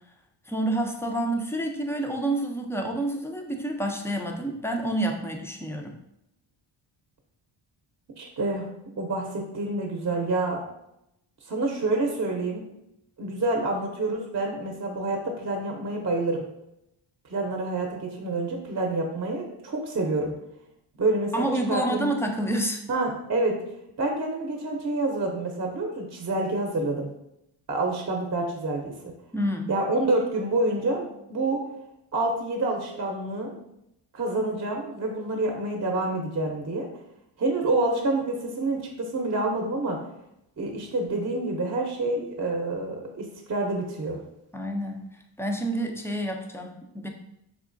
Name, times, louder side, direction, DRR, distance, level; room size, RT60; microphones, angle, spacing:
voice 1, 0.5-6.0 21.3-22.8 29.3-29.7 44.5-45.0 45.4-47.1, right 1 dB, 5° left, 3 dB, 0.3 m, -28 dB
voice 2, 8.2-8.7 9.0-10.6 11.5-12.6 13.2-16.4 17.3-20.3 21.0-22.1 22.9-23.6 24.0-27.1 27.7-29.1 29.7-31.6 32.1-33.5 34.1-36.9 37.4-40.0 40.6-44.2, right 2 dB, 35° right, 1 dB, 0.6 m, -27 dB
3.6 x 3.0 x 2.5 m, 0.81 s
cardioid pair, 85°, 48 cm